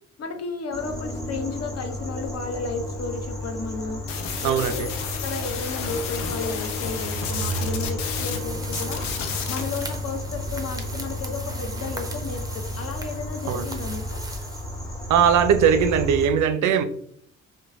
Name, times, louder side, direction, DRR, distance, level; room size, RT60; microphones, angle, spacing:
voice 1, 0.2-4.1 4.4-9.1 9.5-14.2, left 4 dB, 40° left, 4 dB, 0.8 m, -33 dB
sound 1, 0.7-16.3, left 1 dB, 10° left, 1.1 m, -32 dB
sound 2, 4.1-8.4 8.6-9.8, left 6 dB, 75° left, 0.6 m, -32 dB
voice 2, 4.4-4.9 13.5-13.6 15.1-16.8, right 7 dB, 55° right, 9 dB, 0.5 m, -20 dB
sound 3, 8.0-15.2, right 2 dB, 10° right, 0.7 m, -39 dB
3.1 x 2.2 x 3.5 m, 0.65 s
hypercardioid pair, 40°, 37 cm